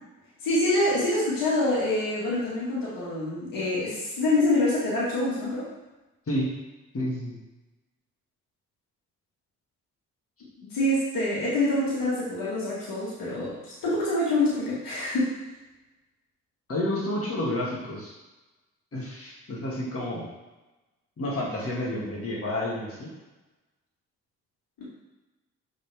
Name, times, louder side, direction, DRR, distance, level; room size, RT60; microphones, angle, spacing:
voice 1, 0.4-5.7 10.7-15.3 24.8-24.9, left 1 dB, 80° left, -7 dB, 2.1 m, -26 dB
voice 2, 6.9-7.4 16.7-18.1 18.9-20.2 21.2-23.1, left 1 dB, 40° left, -5 dB, 2.1 m, -30 dB
6.5 x 4.2 x 3.5 m, 1.1 s
supercardioid pair, 60°, 33 cm